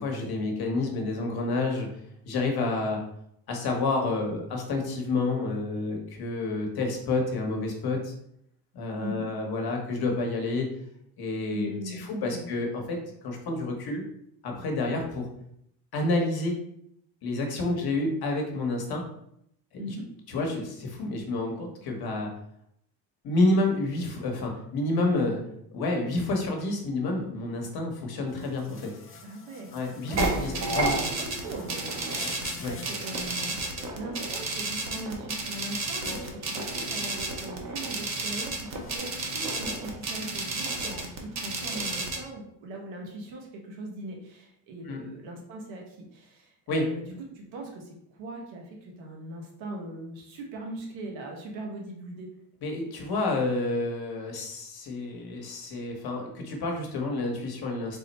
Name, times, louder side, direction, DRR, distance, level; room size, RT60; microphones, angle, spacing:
voice 1, 0.0-1.9 2.2-3.0 3.5-8.1 8.7-10.7 11.2-14.0 14.4-15.3 15.9-16.5 17.2-19.0 19.7-19.8 20.3-22.3 23.2-25.4 25.7-28.9 29.7-30.9 32.6-32.7 44.9-45.0 46.7-46.9 52.6-58.0, left 2 dB, 55° left, 1 dB, 1.1 m, -29 dB
voice 2, 11.5-12.5 17.6-17.8 19.8-20.1 29.2-29.7 30.1-33.6 34.0-52.3, right 1 dB, 75° right, 0 dB, 1.2 m, -40 dB
sound 1, 28.3-33.7 36.0-36.3 38.8-39.0, left 4 dB, 30° left, 0.6 m, -46 dB
sound 2, 30.2-42.2, right 3 dB, 35° right, 0.8 m, -31 dB
3.8 x 2.1 x 4.0 m, 0.73 s
cardioid pair, 100°, 46 cm